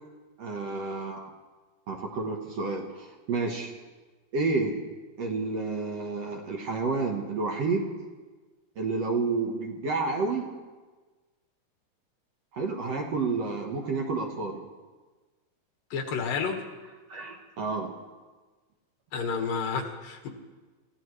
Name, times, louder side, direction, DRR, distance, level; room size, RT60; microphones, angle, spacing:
voice 1, 0.4-1.3 1.9-3.7 4.3-4.8 5.2-7.9 8.8-10.5 12.5-14.6 17.1-18.0, right 3 dB, 60° right, 1 dB, 2.0 m, -30 dB
voice 2, 15.9-16.6 19.1-20.3, left 5 dB, 75° left, 2 dB, 3.3 m, -30 dB
28.0 x 15.0 x 3.2 m, 1.3 s
omnidirectional pair, 4.0 m